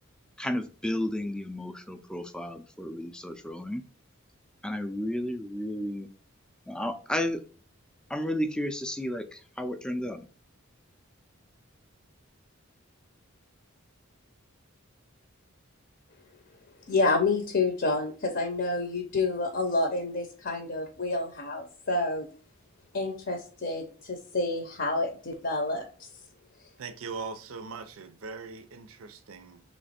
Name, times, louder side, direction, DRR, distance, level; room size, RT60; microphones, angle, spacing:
voice 1, 0.4-3.8 4.6-6.1 6.7-7.4 8.1-10.3, left 1 dB, 5° left, 0.4 m, -32 dB
voice 2, 16.9-22.3 22.9-25.8, left 3 dB, 50° left, 0.7 m, -28 dB
voice 3, 26.8-29.6, right 4 dB, 80° right, 0.5 m, -40 dB
3.2 x 3.1 x 4.2 m
head